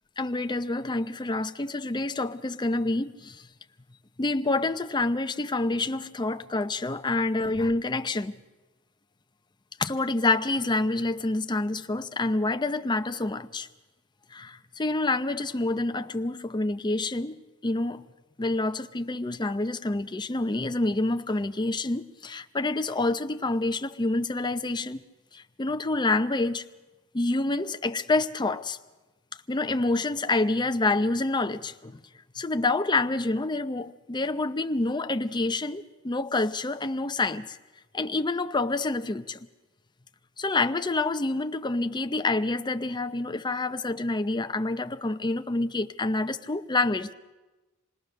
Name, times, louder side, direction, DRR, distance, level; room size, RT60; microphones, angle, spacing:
voice 1, 0.2-3.4 4.2-8.4 9.8-13.7 14.3-17.4 17.6-18.0 18.4-25.0 25.3-26.6 27.1-28.8 29.5-32.0 32.3-37.6 37.9-39.4 40.4-47.1, left 2 dB, 20° left, 0.6 m, -27 dB
27.0 x 18.5 x 6.5 m
head